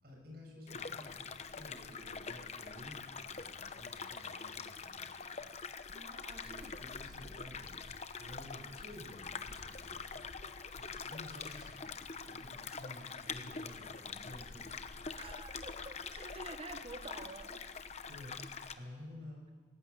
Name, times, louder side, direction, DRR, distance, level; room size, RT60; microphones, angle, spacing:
voice 1, 0.0-6.2 6.4-10.3 10.7-14.8 18.1-19.4, left 1 dB, 55° right, 1 dB, 6.7 m, -52 dB
sound 1, 0.7-18.7, left 5 dB, 35° left, 0.9 m, -45 dB
voice 2, 5.9-6.8 15.2-17.6, right 2 dB, 30° right, 8 dB, 1.4 m, -49 dB
19.0 x 17.0 x 8.3 m, 1.5 s
head